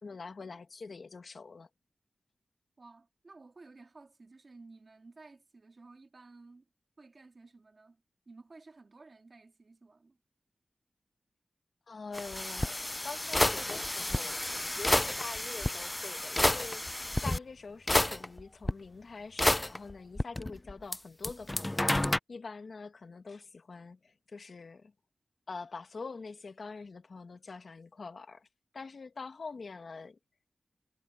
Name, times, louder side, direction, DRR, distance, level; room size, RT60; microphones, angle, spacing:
voice 1, 0.0-1.7 11.9-24.9 25.5-28.5 28.7-30.2, left 4 dB, 65° left, 1.6 m, -45 dB
voice 2, 2.8-6.7 7.0-10.2, right 3 dB, 45° right, 2.2 m, -55 dB
sound 1, 12.1-17.4 17.9-18.7 19.4-21.0 21.2-22.2, left 1 dB, 15° left, 0.3 m, -30 dB
wide cardioid pair, 95°, 0 cm